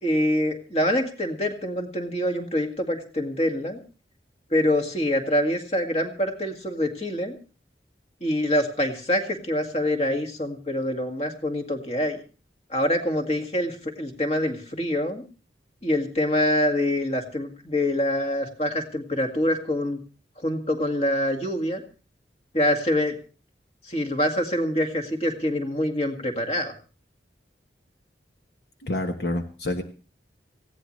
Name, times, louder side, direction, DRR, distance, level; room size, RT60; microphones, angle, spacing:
voice 1, 0.0-3.8 4.5-7.4 8.2-12.2 12.7-15.2 15.8-20.0 20.4-21.8 22.5-23.2 23.9-26.7, left 1 dB, 35° left, 5 dB, 2.0 m, -25 dB
voice 2, 28.8-29.8, left 1 dB, 65° left, 5 dB, 1.2 m, -28 dB
18.5 x 16.0 x 3.2 m, 0.35 s
head